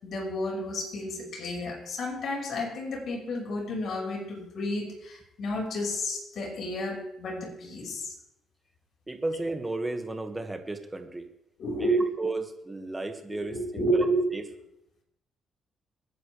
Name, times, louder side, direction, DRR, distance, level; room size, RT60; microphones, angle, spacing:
voice 1, 0.0-8.1 11.6-12.0 13.5-14.2, equal, 65° left, -1 dB, 5.9 m, -31 dB
voice 2, 9.1-11.3 11.8-14.1 14.3-14.4, right 2 dB, 15° right, 5 dB, 2.0 m, -34 dB
27.0 x 10.5 x 3.5 m, 0.83 s
cardioid pair, 90°, 0 cm